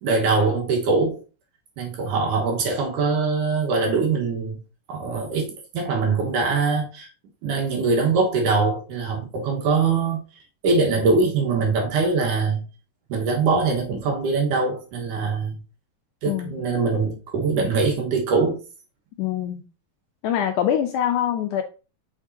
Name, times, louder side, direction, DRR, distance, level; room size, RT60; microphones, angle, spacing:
voice 1, 0.0-1.2 1.8-4.6 4.9-7.1 7.4-10.2 10.6-12.6 13.1-15.5 16.2-18.6, right 4 dB, 70° right, 2.8 m, -22 dB
voice 2, 16.3-16.6 19.2-19.6 20.2-21.6, left 10 dB, 80° left, 1.8 m, -24 dB
6.4 x 5.9 x 2.7 m
omnidirectional pair, 4.0 m